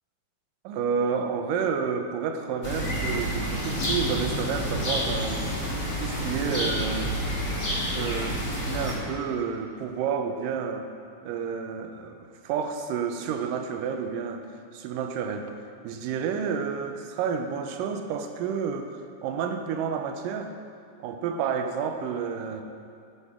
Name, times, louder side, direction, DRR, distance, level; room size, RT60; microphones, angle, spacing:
voice 1, 0.6-5.5 6.0-7.1 7.5-10.9 11.2-14.5 14.7-15.5 15.8-20.5 21.0-22.6, right 6 dB, 80° right, 6 dB, 2.2 m, -30 dB
sound 1, 2.6-8.9, equal, 30° left, 1.3 m, -29 dB
15.5 x 5.3 x 5.0 m, 2.4 s
omnidirectional pair, 4.1 m